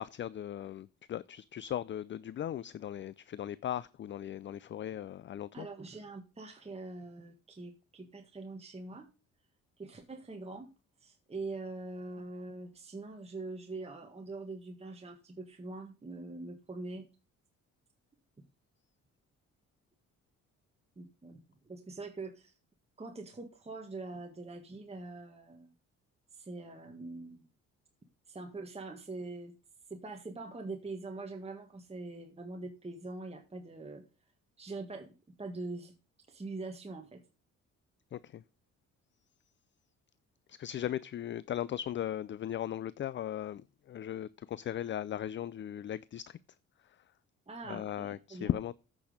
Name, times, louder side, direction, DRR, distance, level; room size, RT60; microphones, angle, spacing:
voice 1, 0.0-5.7 38.1-38.4 40.5-46.4 46.8-47.0 47.7-48.7, left 11 dB, 40° left, 0.4 m, -38 dB
voice 2, 5.5-9.1 9.8-10.7 11.0-17.1 20.9-21.4 21.6-22.5 23.0-25.7 26.3-27.4 28.3-29.5 29.9-34.0 34.6-35.9 36.3-37.2 47.5-48.5, right 3 dB, 20° right, 1.6 m, -43 dB
8.7 x 6.2 x 5.0 m
cardioid pair, 90°, 30 cm